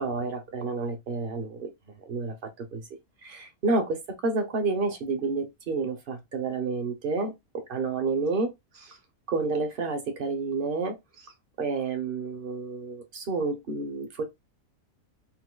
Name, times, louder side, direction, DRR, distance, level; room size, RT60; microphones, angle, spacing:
voice 1, 0.0-1.7 2.1-2.8 3.2-8.5 8.7-9.0 9.3-11.3 11.6-14.2, right 3 dB, 50° right, 0.7 m, -30 dB
3.8 x 2.6 x 2.2 m
omnidirectional pair, 1.5 m